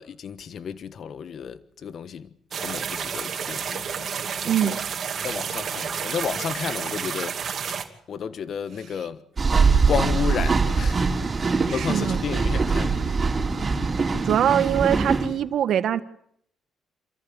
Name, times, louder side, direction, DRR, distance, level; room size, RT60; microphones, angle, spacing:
voice 1, 0.0-2.3 2.6-4.1 4.4-4.8 5.2-7.4 8.1-9.2 9.9-11.1 11.5-13.3, left 7 dB, 60° left, 1.3 m, -32 dB
sound 1, 2.5-7.8, right 7 dB, 55° right, 2.7 m, -30 dB
voice 2, 4.4-4.8 11.7-12.2 14.0-16.0, right 10 dB, 70° right, 1.8 m, -23 dB
sound 2, 9.4-15.3, right 4 dB, 30° right, 5.6 m, -22 dB
27.5 x 14.5 x 8.9 m
cardioid pair, 90°, 0 cm